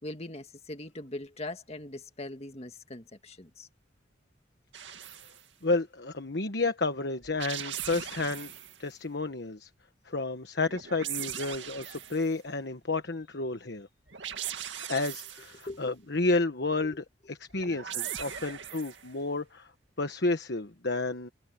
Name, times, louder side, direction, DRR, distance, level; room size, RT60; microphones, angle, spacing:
voice 1, 0.0-3.7 15.7-15.9 16.8-17.0, left 2 dB, 35° left, 1.9 m, -41 dB
sound 1, 4.7-5.4 7.2-8.8 10.6-12.3 14.1-15.7 17.5-19.1, right 10 dB, 75° right, 2.2 m, -39 dB
voice 2, 5.6-8.5 8.8-9.7 10.0-13.9 14.9-19.7 20.0-21.3, left 3 dB, 60° left, 1.3 m, -31 dB
head